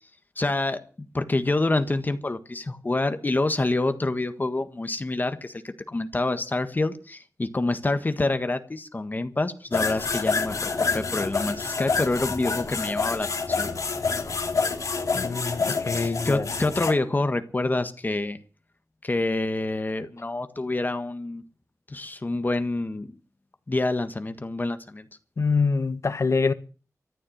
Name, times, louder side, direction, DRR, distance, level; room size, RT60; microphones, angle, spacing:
voice 1, 0.4-13.7 15.9-18.4 19.0-21.4 21.9-23.2 23.7-25.1, left 2 dB, 35° left, 1.5 m, -27 dB
sound 1, 9.7-16.9, left 4 dB, 80° left, 2.7 m, -27 dB
voice 2, 15.1-16.5 25.4-26.5, left 4 dB, 60° left, 1.4 m, -25 dB
14.0 x 10.0 x 9.3 m
wide cardioid pair, 90°, 6 cm